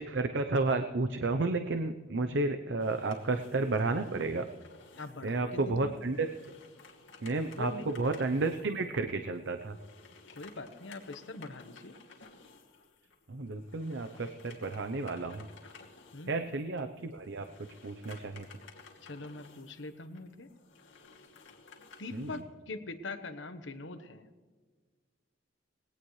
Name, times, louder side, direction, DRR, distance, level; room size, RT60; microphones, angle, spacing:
voice 1, 0.0-4.5 5.2-6.3 7.2-9.8 13.3-15.5 16.3-18.5 22.1-22.4, right 3 dB, 65° right, 7 dB, 0.7 m, -32 dB
sound 1, 2.8-22.4, left 4 dB, 90° left, 2.4 m, -56 dB
voice 2, 5.0-5.9 7.6-7.9 10.4-11.9 16.1-16.5 19.0-20.5 22.0-24.2, left 2 dB, 75° left, 9 dB, 1.2 m, -43 dB
20.0 x 17.0 x 3.2 m, 1.5 s
head